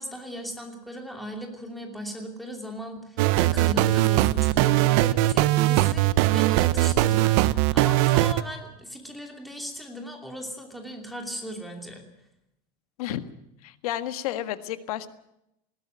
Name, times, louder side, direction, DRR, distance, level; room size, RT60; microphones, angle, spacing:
voice 1, 0.0-12.0, equal, ahead, 2 dB, 2.8 m, -37 dB
sound 1, 3.2-8.4, right 16 dB, 50° right, 0.8 m, -20 dB
voice 2, 13.6-15.1, left 12 dB, 90° left, 11 dB, 1.7 m, -31 dB
20.0 x 16.5 x 9.3 m, 0.81 s
supercardioid pair, 175°, 18 cm